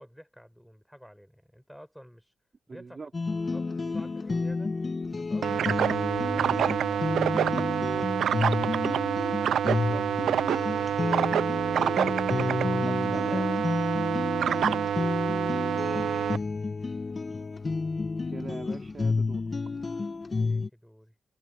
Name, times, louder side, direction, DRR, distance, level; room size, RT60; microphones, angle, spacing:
voice 1, 0.0-2.3 2.7-3.1 3.5-4.8 5.2-9.0 10.8-12.4 13.9-14.2 15.7-16.1 20.3-21.2, equal, ahead, 7.2 m, -51 dB
voice 2, 2.7-3.1 9.6-10.1 12.5-13.5 18.3-19.4, right 4 dB, 45° right, 3.9 m, -41 dB
sound 1, 3.1-20.7, left 4 dB, 40° left, 1.5 m, -31 dB
sound 2, 5.4-16.4, right 9 dB, 80° right, 0.7 m, -27 dB
supercardioid pair, 50°, 0 cm